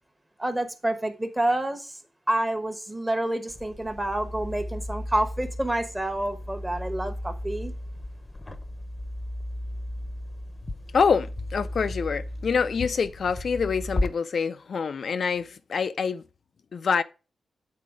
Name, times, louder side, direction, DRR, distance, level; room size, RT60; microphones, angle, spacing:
voice 1, 0.4-1.9 2.3-7.7, right 1 dB, 10° right, 1.0 m, -28 dB
sound 1, 3.5-14.1, left 1 dB, 15° left, 0.8 m, -35 dB
voice 2, 10.9-16.2 16.7-17.0, left 5 dB, 55° left, 0.4 m, -26 dB
8.4 x 4.1 x 4.9 m
wide cardioid pair, 140°, 0 cm